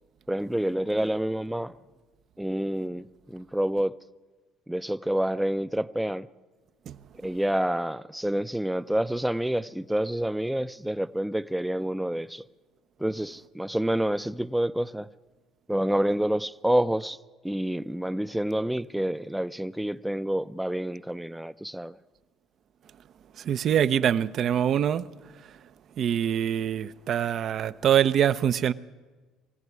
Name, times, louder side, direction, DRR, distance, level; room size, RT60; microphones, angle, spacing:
voice 1, 0.3-1.8 2.4-4.0 4.7-6.3 7.2-12.4 13.0-15.1 15.7-17.2 17.4-22.0, right 1 dB, 5° right, 0.6 m, -28 dB
voice 2, 23.4-25.1 26.0-28.7, right 9 dB, 55° right, 0.7 m, -24 dB
21.5 x 15.0 x 9.6 m
supercardioid pair, 80°, 0 cm